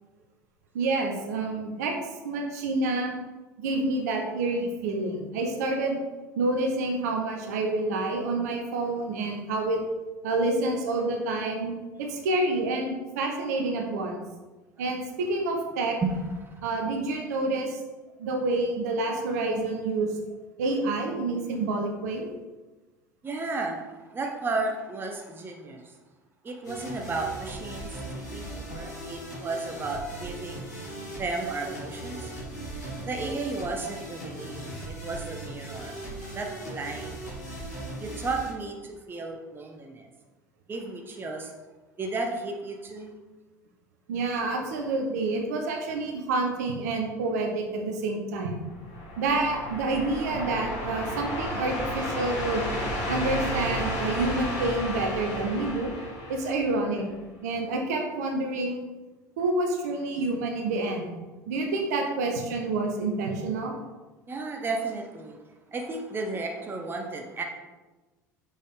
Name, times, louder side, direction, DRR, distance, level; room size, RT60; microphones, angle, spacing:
voice 1, 0.7-1.9 2.2-3.1 3.6-6.0 6.4-9.8 10.2-11.7 12.0-14.2 14.8-16.0 16.6-17.8 18.2-20.1 20.6-22.3 44.1-48.5 49.2-52.6 53.1-55.9 56.3-57.0 57.4-58.8 59.4-61.1 61.5-63.7, right 2 dB, 65° right, 2 dB, 1.0 m, -28 dB
voice 2, 16.0-16.7 23.2-25.9 26.4-30.8 31.2-32.3 33.0-36.0 36.3-37.2 38.0-40.1 40.7-41.5 42.0-43.1 64.3-65.4 65.7-67.4, right 3 dB, 20° right, 3 dB, 0.8 m, -33 dB
sound 1, 26.6-38.5, right 1 dB, 75° left, 2.2 m, -39 dB
sound 2, 48.6-57.1, equal, 55° left, 2.0 m, -32 dB
6.2 x 5.2 x 3.7 m, 1.2 s
figure-of-eight pair, 70°, 10 cm